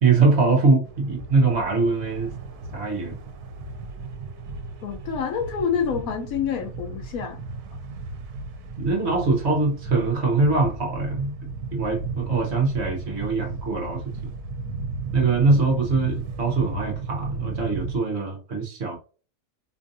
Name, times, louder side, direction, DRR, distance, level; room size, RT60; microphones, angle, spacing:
voice 1, 0.0-2.3 2.7-3.2 8.8-11.3 11.7-14.0 15.1-19.0, right 3 dB, 50° right, 1.1 m, -22 dB
sound 1, 0.8-18.0, right 3 dB, 80° right, 1.2 m, -34 dB
voice 2, 4.8-7.4, left 7 dB, 70° left, 1.0 m, -27 dB
4.4 x 2.5 x 2.6 m
omnidirectional pair, 1.6 m